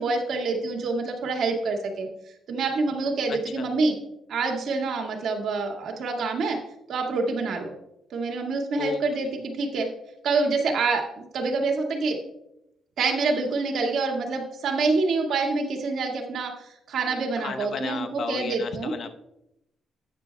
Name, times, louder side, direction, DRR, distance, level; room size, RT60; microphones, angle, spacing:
voice 1, 0.0-2.1 2.5-3.9 4.3-6.6 6.9-7.7 8.1-9.9 10.2-12.2 13.0-18.9, right 3 dB, 65° right, 2 dB, 1.9 m, -26 dB
voice 2, 3.3-3.7 8.8-9.3 17.4-19.1, left 5 dB, 55° left, 8 dB, 0.9 m, -34 dB
13.5 x 9.2 x 2.3 m, 0.83 s
cardioid pair, 90°, 0 cm